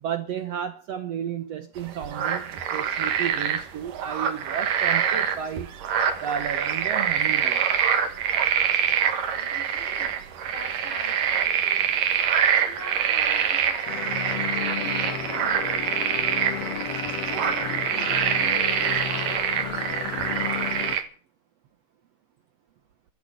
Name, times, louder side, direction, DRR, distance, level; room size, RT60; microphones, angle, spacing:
voice 1, 0.0-5.7 6.2-7.7, right 8 dB, 65° right, 1.9 m, -32 dB
sound 1, 1.8-21.0, right 8 dB, 80° right, 3.4 m, -25 dB
voice 2, 9.0-12.0 12.5-16.1 17.4-20.3 20.7-20.9, left 1 dB, 35° left, 5.8 m, -45 dB
sound 2, 13.8-21.0, left 10 dB, 65° left, 2.1 m, -33 dB
13.5 x 10.5 x 9.0 m
omnidirectional pair, 3.7 m